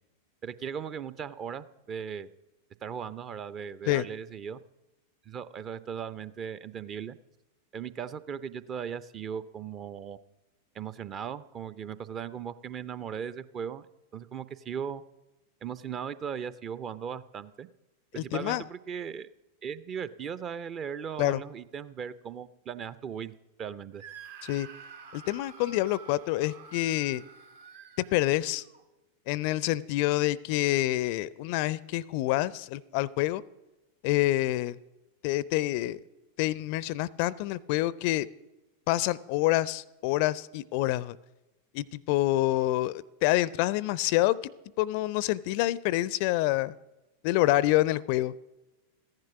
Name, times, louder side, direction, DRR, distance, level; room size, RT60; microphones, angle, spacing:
voice 1, 0.4-2.3 2.8-4.6 5.3-7.2 7.7-10.2 10.7-13.8 14.1-15.0 15.6-17.7 18.1-19.3 19.6-24.0, right 7 dB, 30° right, 16 dB, 0.6 m, -38 dB
voice 2, 18.2-18.6 21.2-21.4 24.5-24.7 25.1-27.2 28.1-28.6 29.3-33.4 34.0-34.8 35.2-36.0 36.4-38.3 38.9-41.2 41.7-44.5 44.8-46.7 47.2-48.3, left 16 dB, 45° left, 22 dB, 0.4 m, -27 dB
Screaming, 24.0-28.8, right 6 dB, 55° right, 1.0 m, -49 dB
14.5 x 10.5 x 5.9 m, 1.0 s
figure-of-eight pair, 90°, 0 cm